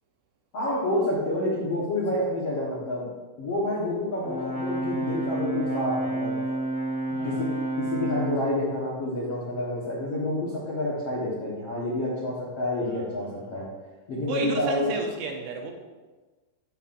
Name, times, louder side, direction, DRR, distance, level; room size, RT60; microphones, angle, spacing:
voice 1, 0.5-3.1 3.4-6.4 7.1-7.5 7.8-13.6 14.1-14.9, left 1 dB, 80° left, -7 dB, 1.3 m, -28 dB
Brass instrument, 4.2-8.5, right 1 dB, 50° left, 0.9 m, -29 dB
voice 2, 7.1-7.5 12.8-13.7 14.3-15.7, right 3 dB, 75° right, 2 dB, 3.0 m, -34 dB
15.5 x 5.7 x 2.6 m, 1.3 s
omnidirectional pair, 5.4 m